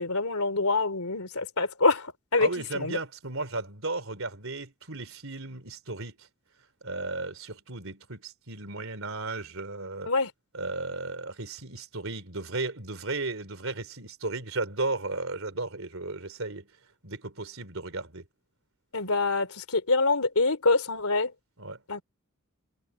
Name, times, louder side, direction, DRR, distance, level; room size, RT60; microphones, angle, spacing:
voice 1, 0.0-3.0 10.1-10.3 18.9-21.3 21.9-22.0, left 3 dB, 85° left, 3.2 m, -26 dB
voice 2, 2.4-6.3 6.8-10.1 10.5-16.7 17.0-18.2 21.6-21.8, right 3 dB, 65° right, 3.8 m, -35 dB
head